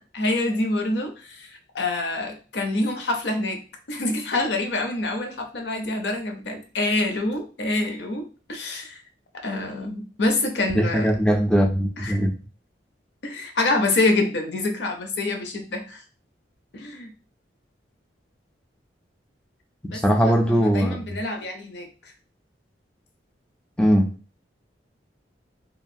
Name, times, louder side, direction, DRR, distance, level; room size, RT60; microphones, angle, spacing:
voice 1, 0.1-3.6 3.9-9.0 9.4-11.1 12.0-12.1 13.2-16.0 16.7-17.1 19.9-22.1, left 2 dB, 70° left, 4 dB, 0.6 m, -26 dB
voice 2, 10.8-12.3 19.8-21.2 23.8-24.1, equal, 5° left, 3 dB, 0.3 m, -20 dB
2.9 x 2.4 x 2.6 m, 0.36 s
head